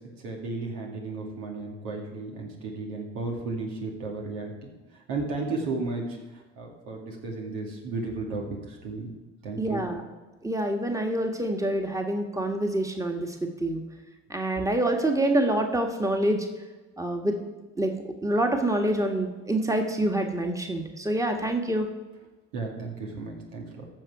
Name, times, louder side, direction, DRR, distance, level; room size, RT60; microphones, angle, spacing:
voice 1, 0.2-4.7 5.1-9.1 9.4-9.8 22.5-23.9, right 3 dB, 80° right, -1 dB, 2.3 m, -34 dB
voice 2, 9.6-10.0 10.4-13.8 14.3-16.5 17.0-17.4 17.8-18.0 18.2-21.9, right 1 dB, 10° right, 3 dB, 1.5 m, -26 dB
15.0 x 6.1 x 4.8 m, 1.2 s
hypercardioid pair, 60°, 37 cm